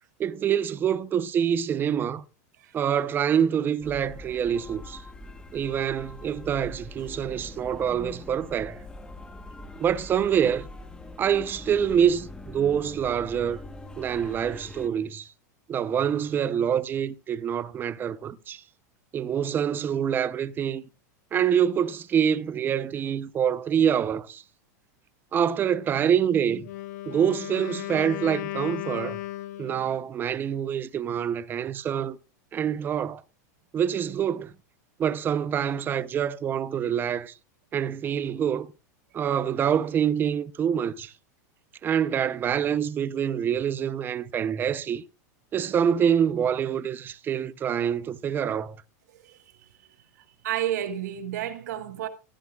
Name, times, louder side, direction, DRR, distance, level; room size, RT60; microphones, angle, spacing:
voice 1, 0.2-2.2 2.7-5.0 5.5-8.8 9.8-10.7 11.2-13.6 14.0-15.3 15.7-18.6 19.1-20.8 21.3-24.4 25.3-26.7 27.1-29.2 29.6-32.2 32.5-33.2 33.7-34.5 35.0-37.3 37.7-38.7 39.1-41.1 41.8-45.0 45.5-48.8, right 8 dB, 20° right, 0.7 m, -26 dB
sound 1, 3.8-14.9, left 2 dB, 10° left, 1.2 m, -43 dB
Wind instrument woodwind instrument, 26.6-30.1, left 15 dB, 65° left, 1.1 m, -35 dB
voice 2, 50.4-52.1, right 11 dB, 75° right, 1.7 m, -31 dB
15.0 x 13.5 x 2.4 m
supercardioid pair, 145°, 9 cm